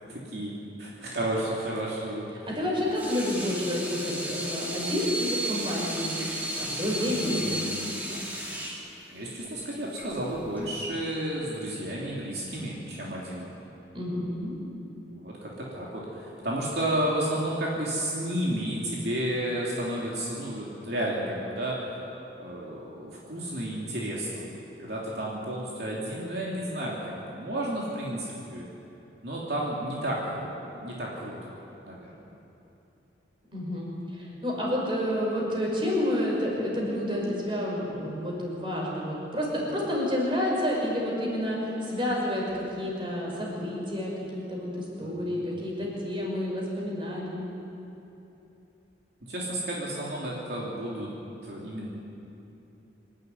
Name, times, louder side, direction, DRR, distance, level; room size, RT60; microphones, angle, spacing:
voice 1, 0.1-0.5 0.8-2.5 6.9-7.7 8.1-8.3 9.1-13.5 15.1-21.8 22.4-24.4 24.8-28.6 29.2-31.5 31.9-32.1 45.0-45.6 49.3-51.1 51.4-51.9, right 1 dB, 60° right, -5 dB, 3.1 m, -32 dB
voice 2, 2.4-6.2 6.6-7.6 13.9-14.5 33.5-47.4, left 1 dB, 30° right, -3 dB, 5.6 m, -29 dB
Water tap faucet / Sink (filling or washing), 2.7-10.8, right 1 dB, 10° right, 2.5 m, -34 dB
26.0 x 12.5 x 9.6 m, 3.0 s
head